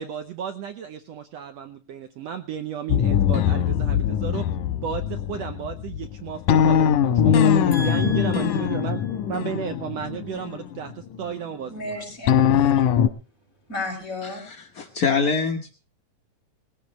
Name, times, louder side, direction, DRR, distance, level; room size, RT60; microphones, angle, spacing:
voice 1, 0.0-4.5 4.8-9.0 9.3-12.0, right 8 dB, 70° right, 9 dB, 1.7 m, -33 dB
sound 1, 2.9-11.2 12.3-13.1, left 9 dB, 90° left, 2.4 m, -21 dB
voice 2, 7.7-8.7 11.7-12.9 13.7-14.4, left 2 dB, 25° left, 1 dB, 6.2 m, -34 dB
voice 3, 14.2-15.7, left 5 dB, 55° left, 3 dB, 0.9 m, -25 dB
20.5 x 16.0 x 3.1 m, 0.35 s
omnidirectional pair, 3.5 m